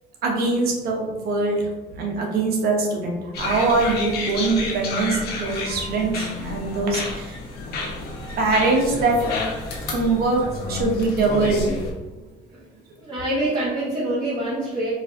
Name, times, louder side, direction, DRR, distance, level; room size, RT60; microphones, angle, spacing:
voice 1, 0.2-1.7 2.0-7.4 8.4-9.3 9.9-10.4 10.7-11.6, right 3 dB, 65° right, 0 dB, 1.0 m, -22 dB
sound 1, 3.3-11.9, left 3 dB, 70° left, 1.0 m, -30 dB
voice 2, 13.0-14.9, right 1 dB, 30° right, -9 dB, 1.2 m, -25 dB
4.4 x 2.6 x 2.7 m, 1.2 s
cardioid pair, 110°, 17 cm